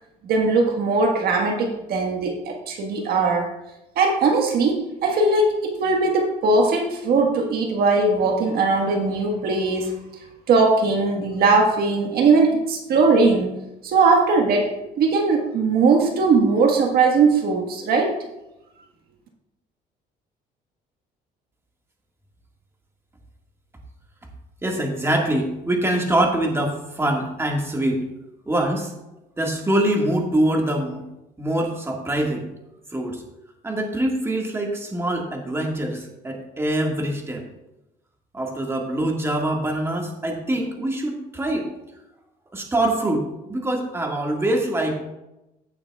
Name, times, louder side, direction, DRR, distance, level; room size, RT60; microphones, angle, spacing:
voice 1, 0.2-3.5 3.9-10.0 10.5-13.6 13.8-18.2, right 3 dB, 65° right, 2 dB, 1.5 m, -20 dB
voice 2, 24.6-28.1 28.5-28.9 29.4-31.0 31.4-32.4 32.9-33.2 33.6-37.4 38.3-41.7 42.5-45.0, right 1 dB, 15° right, 1 dB, 1.8 m, -24 dB
16.0 x 6.9 x 2.4 m, 0.93 s
cardioid pair, 110°, 17 cm